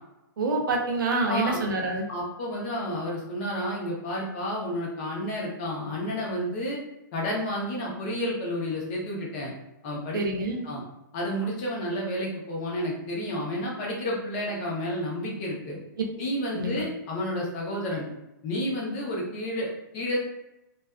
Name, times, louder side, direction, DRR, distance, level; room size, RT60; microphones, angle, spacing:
voice 1, 0.4-2.0 10.1-10.7 16.5-16.8, right 2 dB, 75° right, 0 dB, 0.7 m, -27 dB
voice 2, 1.3-1.6 2.1-6.8 7.1-9.5 9.8-10.2 10.6-10.8 11.1-15.8 16.2-18.1 18.4-20.2, equal, 30° left, -3 dB, 0.7 m, -31 dB
2.4 x 2.3 x 2.3 m, 0.93 s
hypercardioid pair, 160°, 11 cm